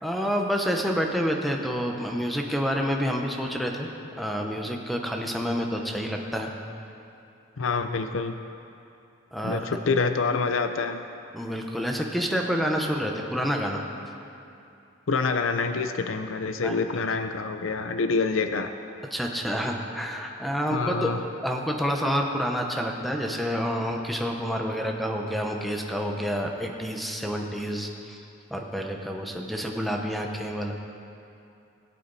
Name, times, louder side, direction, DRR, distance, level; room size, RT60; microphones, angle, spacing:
voice 1, 0.0-3.9 4.2-6.5 9.3-9.6 11.3-13.8 16.6-16.8 19.1-21.1 21.4-28.2 28.5-30.7, equal, ahead, 1 dB, 1.0 m, -28 dB
voice 2, 7.6-8.4 9.4-11.0 15.1-18.7 20.7-21.2, left 4 dB, 75° left, 8 dB, 0.6 m, -26 dB
20.5 x 8.5 x 4.1 m, 2.7 s
head